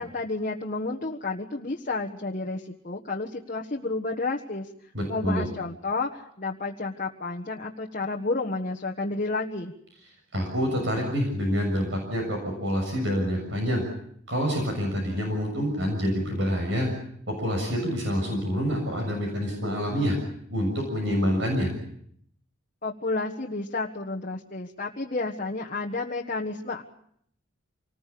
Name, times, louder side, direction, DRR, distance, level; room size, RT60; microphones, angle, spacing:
voice 1, 0.0-4.7 5.1-9.7 22.8-26.8, left 3 dB, 40° left, 0 dB, 1.5 m, -31 dB
voice 2, 4.9-5.5 10.3-13.8 14.3-16.9 17.3-20.2 20.5-21.7, equal, 60° right, 2 dB, 6.7 m, -27 dB
27.0 x 20.0 x 8.6 m, 0.69 s
head